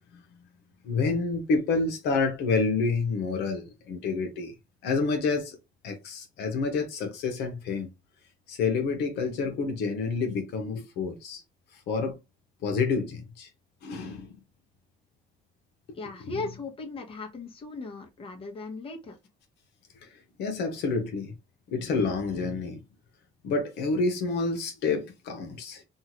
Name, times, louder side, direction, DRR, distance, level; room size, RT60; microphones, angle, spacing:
voice 1, 0.8-4.5 4.8-5.6 5.8-7.9 8.5-11.4 11.7-12.2 12.6-13.5 13.8-14.4 15.9-16.0 20.0-20.1 20.4-21.3 21.7-22.8 23.4-25.8, left 4 dB, 80° left, 0.8 m, -28 dB
voice 2, 15.9-19.2, left 3 dB, 35° left, 1.0 m, -37 dB
2.7 x 2.3 x 2.9 m
cardioid pair, 110°, 17 cm